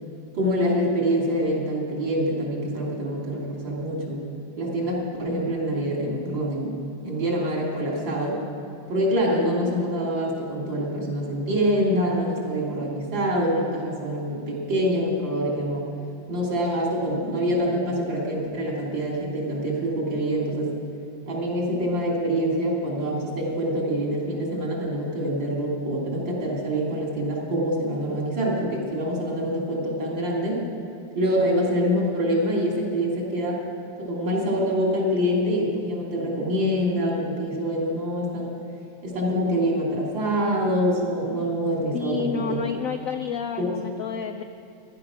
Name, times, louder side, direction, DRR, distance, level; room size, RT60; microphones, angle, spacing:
voice 1, 0.3-4.2 4.6-6.8 7.0-8.4 8.9-15.9 16.3-20.7 21.3-30.6 31.1-33.6 34.0-38.5 39.0-42.6 43.6-43.7, equal, 85° right, -2 dB, 3.8 m, -25 dB
voice 2, 41.9-44.4, left 7 dB, 75° left, 6 dB, 0.7 m, -30 dB
15.5 x 12.0 x 6.1 m, 2.6 s
omnidirectional pair, 2.0 m